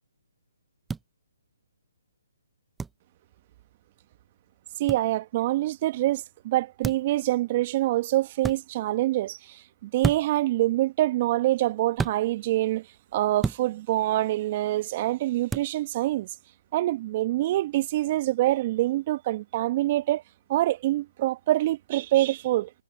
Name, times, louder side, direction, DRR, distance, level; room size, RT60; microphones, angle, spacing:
sound 1, 0.9-1.0 2.8-3.0 4.9-5.0 6.8-7.1 8.4-8.6 10.0-10.4 12.0-12.2 13.4-13.6 15.5-15.7, right 4 dB, 5° right, 0.8 m, -29 dB
voice 1, 4.8-12.9 13.1-16.3 16.7-20.2 20.5-22.8, right 15 dB, 40° right, 1.1 m, -25 dB
figure-of-eight pair, 140°, 0 cm